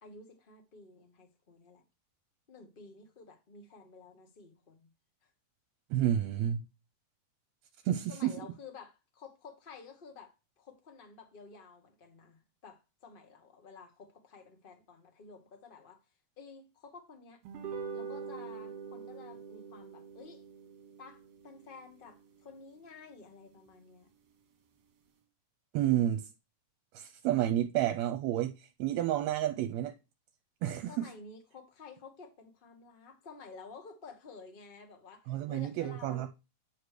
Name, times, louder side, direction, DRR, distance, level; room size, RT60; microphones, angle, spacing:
voice 1, 0.0-1.8 2.5-4.9 8.1-16.0 16.4-17.4 17.9-20.4 21.0-24.1 30.9-36.3, left 4 dB, 60° left, 0.5 m, -52 dB
voice 2, 5.9-6.6 7.9-8.5 25.7-26.3 26.9-29.9 30.6-31.1 35.3-36.3, right 12 dB, 80° right, 1.9 m, -30 dB
sound 1, 17.4-24.0, right 5 dB, 65° right, 2.1 m, -45 dB
9.4 x 3.3 x 6.6 m
omnidirectional pair, 3.3 m